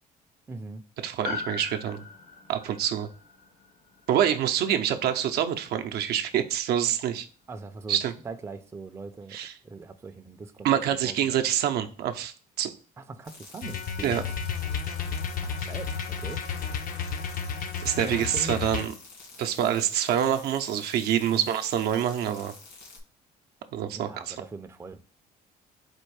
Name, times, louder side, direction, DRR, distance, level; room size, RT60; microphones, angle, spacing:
voice 1, 0.5-0.8 7.5-8.0 8.2-9.4 9.6-11.4 13.0-14.2 15.4-16.4 18.0-18.6 21.2-21.5 23.9-25.0, right 3 dB, 15° right, 0.4 m, -41 dB
voice 2, 1.0-2.0 2.5-3.1 4.1-7.3 7.9-8.1 9.3-9.5 10.6-12.7 14.0-14.2 17.8-18.9 19.4-22.5 23.7-24.4, right 10 dB, 70° right, 0.6 m, -26 dB
Piano, 1.2-5.8 6.1-6.2, left 4 dB, 90° left, 1.5 m, -41 dB
sound 1, 13.2-23.0, left 3 dB, 75° left, 1.9 m, -48 dB
sound 2, 13.6-18.9, left 6 dB, 55° left, 0.6 m, -32 dB
4.4 x 2.6 x 4.7 m
cardioid pair, 110°, 17 cm